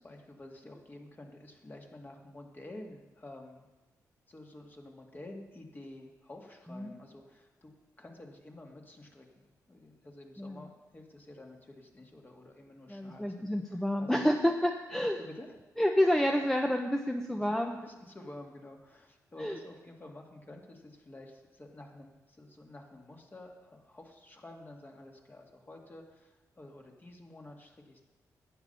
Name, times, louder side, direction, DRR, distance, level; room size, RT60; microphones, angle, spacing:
voice 1, 0.0-3.7 4.3-7.7 8.0-14.1 15.0-15.5 17.4-28.0, left 1 dB, 30° left, 1 dB, 2.2 m, -50 dB
voice 2, 12.9-15.2 15.8-17.8 19.4-19.6, equal, 5° left, 3 dB, 0.9 m, -29 dB
11.5 x 8.6 x 5.5 m, 1.1 s
cardioid pair, 65°, 7 cm